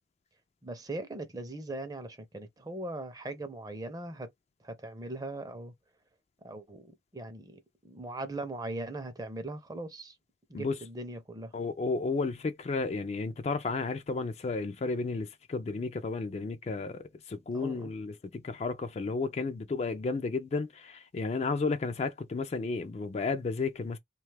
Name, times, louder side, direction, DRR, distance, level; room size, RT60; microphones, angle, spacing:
voice 1, 0.6-4.3 4.6-5.7 6.4-7.6 7.8-10.1 10.5-11.5 17.5-17.9, right 2 dB, 20° right, 0.5 m, -40 dB
voice 2, 11.5-17.0 17.3-24.0, left 4 dB, 35° left, 0.3 m, -32 dB
2.8 x 2.3 x 3.2 m
head